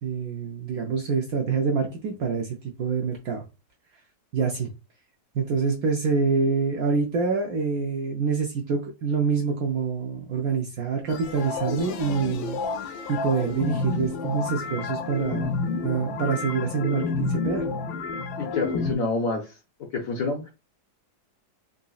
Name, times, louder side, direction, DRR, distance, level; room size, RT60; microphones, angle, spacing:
voice 1, 0.0-3.4 4.3-4.7 5.3-12.6 13.1-15.5 15.8-17.7, right 5 dB, 70° right, 0.9 m, -26 dB
sound 1, 11.1-19.0, left 4 dB, 85° left, 1.3 m, -30 dB
voice 2, 18.4-19.6 19.9-20.5, left 3 dB, 65° left, 0.9 m, -28 dB
3.9 x 2.5 x 2.3 m
omnidirectional pair, 2.0 m